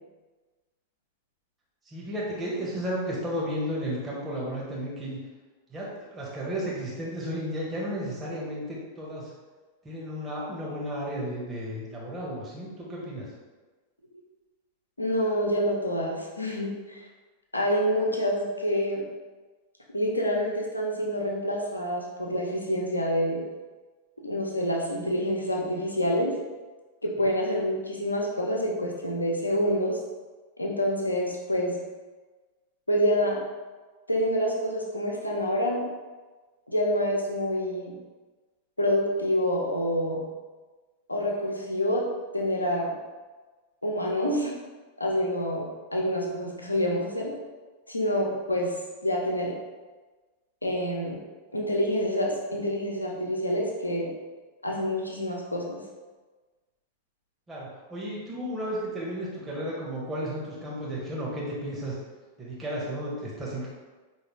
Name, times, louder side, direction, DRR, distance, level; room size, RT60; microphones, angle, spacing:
voice 1, 1.8-5.2 5.7-9.3 9.8-13.3 27.3-27.4 57.5-62.0 62.4-63.7, equal, 15° right, -6 dB, 1.1 m, -33 dB
voice 2, 15.0-17.1 17.5-19.0 19.9-23.4 24.2-26.3 27.0-30.0 30.6-31.8 32.9-33.4 34.1-35.8 36.7-37.9 38.8-40.2 41.1-42.0 42.3-42.9 43.8-44.5 45.0-47.4 47.9-48.7 49.0-49.5 50.6-51.2 51.5-54.1 54.6-55.8, equal, 80° left, -1 dB, 0.7 m, -27 dB
4.7 x 2.7 x 3.2 m, 1.3 s
figure-of-eight pair, 90°, 0 cm